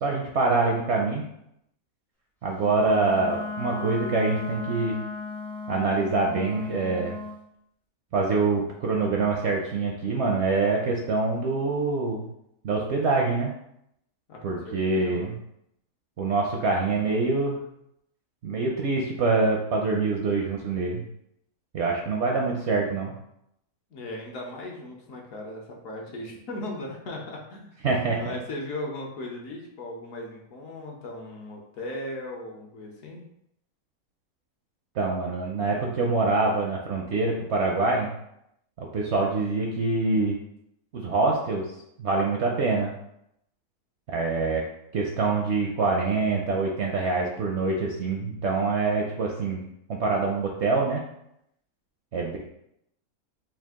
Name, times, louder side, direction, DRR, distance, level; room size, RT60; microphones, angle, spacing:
voice 1, 0.0-1.2 2.4-5.0 5.7-7.2 8.1-12.3 12.6-13.5 14.4-15.4 16.2-17.6 18.4-21.0 21.7-23.1 27.8-28.3 35.0-38.1 38.8-40.4 40.9-41.7 42.0-42.9 44.1-44.6 44.9-49.6 49.9-51.0 52.1-52.4, right 3 dB, 65° right, -1 dB, 0.7 m, -25 dB
Wind instrument woodwind instrument, 2.6-7.4, left 3 dB, 5° left, 0.4 m, -36 dB
voice 2, 14.3-15.3 23.9-27.7 28.2-33.2, left 1 dB, 65° left, -1 dB, 1.1 m, -37 dB
4.5 x 2.4 x 3.6 m, 0.78 s
omnidirectional pair, 1.6 m